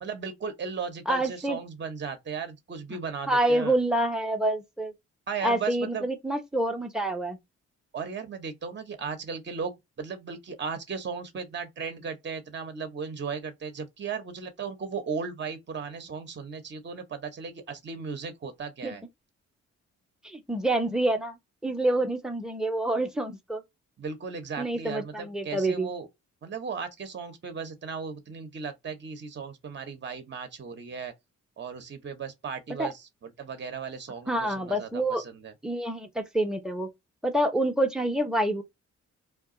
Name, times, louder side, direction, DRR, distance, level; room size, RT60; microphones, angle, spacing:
voice 1, 0.0-3.8 5.3-6.1 7.9-19.0 24.0-26.1 26.4-31.1 31.6-35.5, right 5 dB, 35° right, 0.7 m, -36 dB
voice 2, 1.1-1.6 3.3-4.9 5.4-7.4 18.8-19.0 20.2-21.4 21.6-23.6 24.6-25.9 32.8-32.9 34.3-35.2 35.6-36.9 37.2-38.6, right 1 dB, ahead, 0.7 m, -27 dB
2.3 x 2.2 x 3.6 m
cardioid pair, 65°, 32 cm